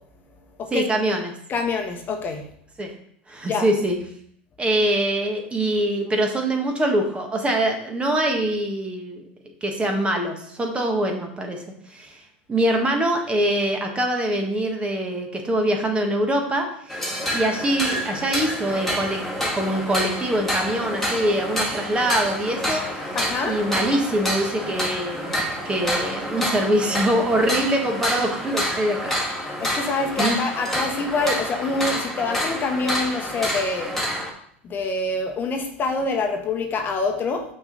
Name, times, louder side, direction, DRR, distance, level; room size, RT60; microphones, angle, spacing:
voice 1, 0.7-1.3 2.8-2.9 3.3-4.0 4.6-9.2 9.6-11.6 11.9-12.2 12.5-17.0 17.3-19.2 19.5-23.1 23.4-29.2 29.6-29.9 30.2-30.4, right 1 dB, 20° right, 3 dB, 1.4 m, -24 dB
voice 2, 1.5-2.4 3.5-3.7 23.1-23.6 29.6-33.9 34.6-37.4, left 3 dB, 35° left, 4 dB, 1.1 m, -26 dB
sound 1, 16.9-34.3, equal, 5° left, 1.8 m, -28 dB
5.9 x 5.3 x 3.9 m, 0.66 s
hypercardioid pair, 85°, 6 cm